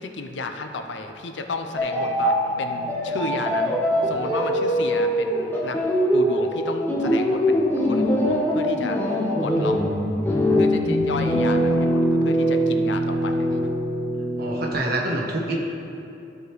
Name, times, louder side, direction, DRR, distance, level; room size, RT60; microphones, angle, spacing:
voice 1, 0.0-3.7 4.0-5.8 6.1-9.8 10.6-13.7, left 3 dB, 80° left, 6 dB, 0.7 m, -32 dB
sound 1, 1.8-14.7, equal, 10° left, 1.2 m, -22 dB
voice 2, 14.4-15.6, right 2 dB, 60° right, -2 dB, 1.3 m, -26 dB
14.5 x 5.0 x 3.2 m, 2.7 s
head